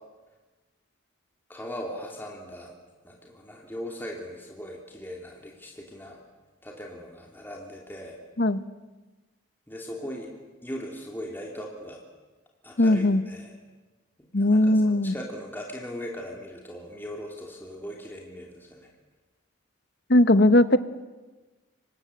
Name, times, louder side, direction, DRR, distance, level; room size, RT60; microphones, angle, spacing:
voice 1, 1.5-2.7 3.0-6.2 6.6-8.2 9.7-10.3 10.6-12.0 12.6-13.5 14.2-18.9, equal, 10° left, -1 dB, 3.2 m, -39 dB
voice 2, 12.8-13.2 14.3-15.1 20.1-20.8, left 1 dB, 55° left, 12 dB, 1.1 m, -19 dB
29.0 x 24.5 x 8.0 m, 1.2 s
head